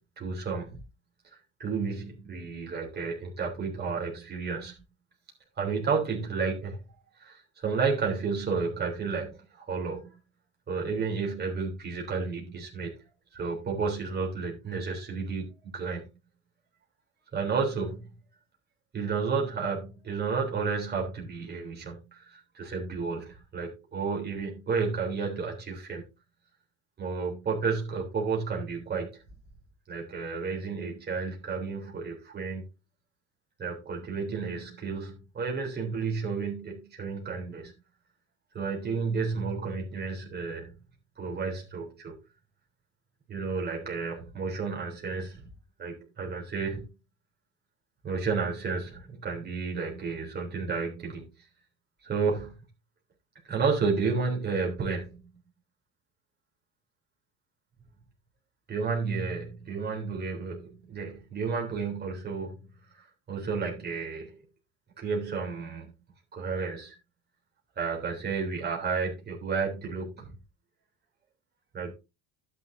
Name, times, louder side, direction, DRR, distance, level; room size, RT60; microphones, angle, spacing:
voice 1, 0.2-0.7 1.6-4.8 5.6-6.8 7.2-10.2 10.7-12.9 13.3-16.1 17.3-18.1 18.9-26.0 27.0-29.2 29.9-32.6 33.6-37.7 38.5-40.7 41.2-42.1 43.3-45.5 45.8-46.9 48.0-51.2 52.0-52.5 53.4-55.3 58.7-62.7 62.9-64.4 65.0-65.9 66.3-66.9 67.8-70.3 71.7-71.9, right 5 dB, 25° right, 3.4 m, -32 dB
12.0 x 9.5 x 2.7 m
cardioid pair, 170°, 40 cm